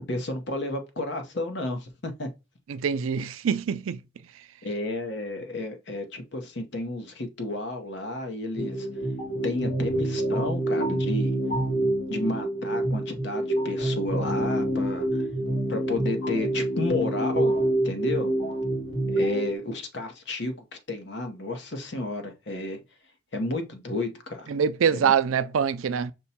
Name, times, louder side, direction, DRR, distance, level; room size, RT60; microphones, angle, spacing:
voice 1, 0.0-2.3 4.6-8.9 9.4-11.3 12.1-15.3 15.7-18.3 19.1-22.8 23.3-24.6 24.9-25.1, left 2 dB, 55° left, 0.8 m, -32 dB
voice 2, 2.7-4.0 24.5-26.1, right 7 dB, 85° right, 0.4 m, -24 dB
sound 1, 8.6-19.6, right 1 dB, 80° left, 1.4 m, -27 dB
5.4 x 2.2 x 4.2 m
head